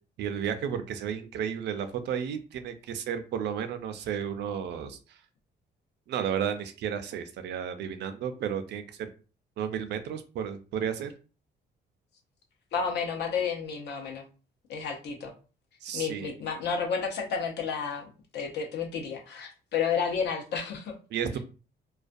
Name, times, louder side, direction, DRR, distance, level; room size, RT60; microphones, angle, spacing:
voice 1, 0.2-5.2 6.1-9.1 9.6-11.1 15.8-16.3 21.1-21.4, right 8 dB, 70° right, 0.4 m, -33 dB
voice 2, 12.7-14.2 14.7-15.3 15.9-18.1 18.3-20.9, left 6 dB, 70° left, 0.7 m, -31 dB
2.4 x 2.1 x 2.5 m
cardioid pair, 145°, 18 cm